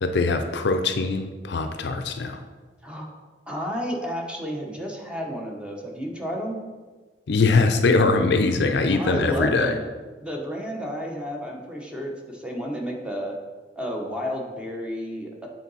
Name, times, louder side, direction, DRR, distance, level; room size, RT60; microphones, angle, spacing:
voice 1, 0.0-2.4 7.3-9.7, left 3 dB, 65° left, 7 dB, 0.5 m, -22 dB
voice 2, 2.8-3.2 3.5-6.6 8.9-9.9 10.2-13.4 13.8-15.5, equal, 5° right, -1 dB, 1.0 m, -31 dB
8.4 x 3.9 x 4.1 m, 1.3 s
head